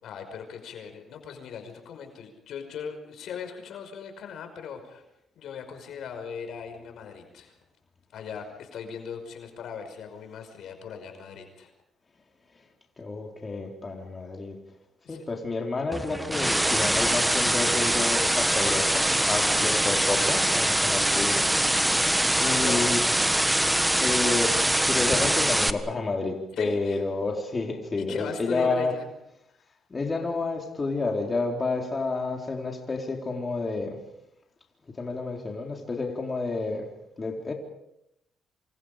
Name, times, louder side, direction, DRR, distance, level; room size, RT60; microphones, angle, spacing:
voice 1, 0.0-5.0 5.4-7.5 8.1-11.7 15.0-15.2 19.5-19.8 22.4-23.3 26.6-27.0 28.0-29.1 29.5-29.6, left 6 dB, 75° left, 6 dB, 5.5 m, -38 dB
voice 2, 13.0-14.6 15.1-21.5 22.4-23.0 24.0-28.9 29.9-34.0 35.0-36.9 37.2-37.5, left 3 dB, 30° left, 1 dB, 4.2 m, -30 dB
sound 1, 15.9-25.7, right 1 dB, 10° right, 1.5 m, -23 dB
27.0 x 27.0 x 5.2 m, 0.82 s
cardioid pair, 90°, 0 cm